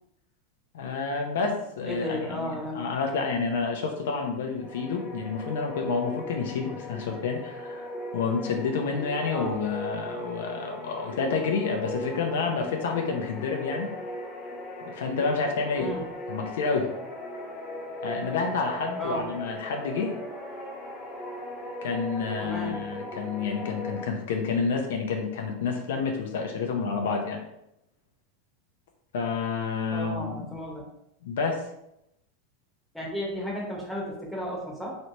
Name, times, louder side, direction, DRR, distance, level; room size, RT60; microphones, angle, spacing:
voice 1, 0.7-13.9 14.8-15.9 16.3-16.9 18.0-20.1 21.8-27.4 29.1-30.5 31.2-31.6, left 5 dB, 80° left, 3 dB, 0.6 m, -29 dB
voice 2, 1.9-2.9 9.3-9.6 15.7-16.1 19.0-19.3 22.4-22.8 29.9-30.8 32.9-35.0, equal, ahead, -4 dB, 1.0 m, -33 dB
sound 1, 4.6-24.0, left 1 dB, 25° left, 0.6 m, -38 dB
3.2 x 3.0 x 2.7 m, 0.81 s
supercardioid pair, 125°, 0 cm